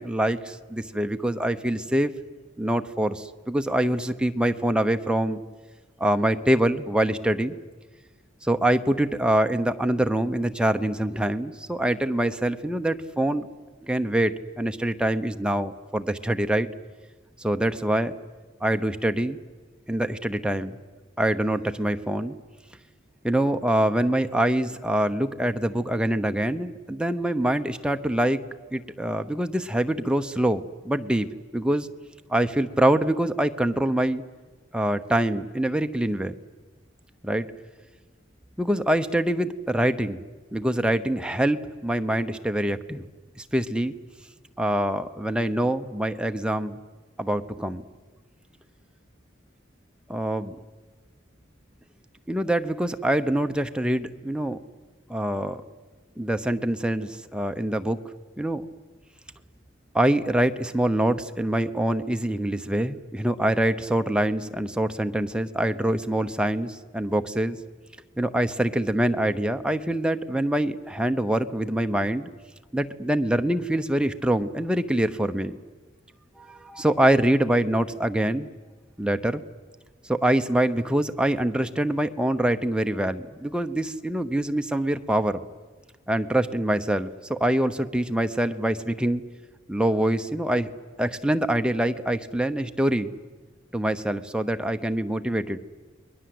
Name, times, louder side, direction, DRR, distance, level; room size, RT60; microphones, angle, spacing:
voice 1, 0.0-2.1 2.6-5.4 6.0-7.6 8.4-13.5 13.8-16.7 17.4-18.1 18.6-19.4 19.9-20.8 21.2-22.4 23.2-28.4 28.7-31.9 32.3-34.2 34.7-36.3 37.2-37.5 38.6-40.2 40.5-43.0 43.4-43.9 44.6-46.8 47.2-47.8 50.1-50.6 52.3-54.6 55.1-55.6 56.2-58.0 58.4-58.7 59.9-67.6 68.2-72.3 72.7-75.6 76.4-78.5 79.0-79.4 80.0-85.4 86.1-89.2 89.7-90.7 91.0-93.1 93.7-95.6, right 1 dB, 5° right, 7 dB, 0.8 m, -25 dB
29.5 x 21.5 x 7.9 m, 1.3 s
head